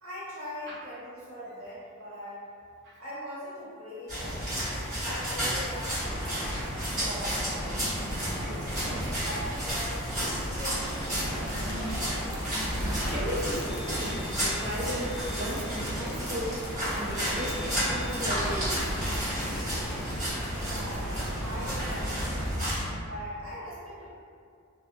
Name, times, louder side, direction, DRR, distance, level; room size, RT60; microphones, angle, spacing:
voice 1, 0.0-2.4 3.0-4.5 5.0-6.5 7.0-8.7 9.2-11.8 20.5-22.6 23.0-24.1, equal, 80° right, -9 dB, 1.0 m, -41 dB
sound 1, 4.1-22.9, equal, 35° right, 1.2 m, -32 dB
sound 2, 6.0-22.4, equal, 5° left, 0.6 m, -37 dB
sound 3, 10.8-20.0, left 2 dB, 50° left, 0.4 m, -45 dB
voice 2, 13.1-16.6 16.9-18.8, equal, 55° right, -3 dB, 0.4 m, -36 dB
2.5 x 2.3 x 2.5 m, 2.3 s
head